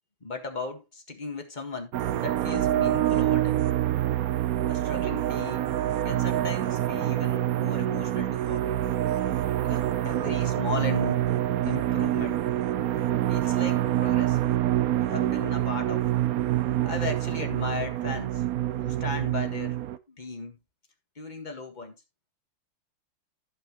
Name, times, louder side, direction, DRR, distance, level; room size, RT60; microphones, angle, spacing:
voice 1, 0.2-3.6 4.7-5.8 6.0-8.7 9.6-11.2 11.7-12.4 13.3-14.4 15.0-16.1 16.8-18.4 18.8-19.8 20.1-20.6 21.2-22.0, left 4 dB, 25° left, 1.7 m, -36 dB
sound 1, 1.9-20.0, right 13 dB, 90° right, 0.7 m, -26 dB
15.0 x 6.0 x 3.1 m
omnidirectional pair, 2.3 m